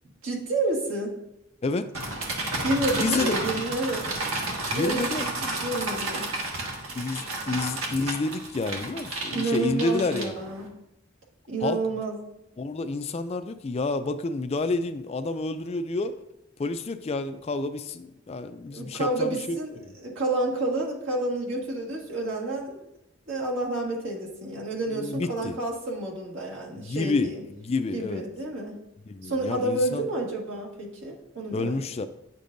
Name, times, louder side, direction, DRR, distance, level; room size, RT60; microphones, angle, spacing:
voice 1, 0.2-1.2 2.6-4.1 4.7-6.4 9.3-10.8 11.5-12.3 18.7-22.8 23.3-27.4 27.9-28.8 29.2-31.8, right 2 dB, 65° right, -2 dB, 1.7 m, -30 dB
sound 1, 1.9-10.7, right 2 dB, 85° right, 1.5 m, -32 dB
voice 2, 3.0-3.3 4.6-5.2 6.9-10.3 11.6-11.8 12.6-16.2 16.6-19.6 24.9-25.6 26.8-27.3 27.6-28.2 29.1-30.1 31.5-32.1, left 3 dB, 30° left, 10 dB, 0.3 m, -29 dB
9.7 x 6.7 x 2.6 m, 0.86 s
head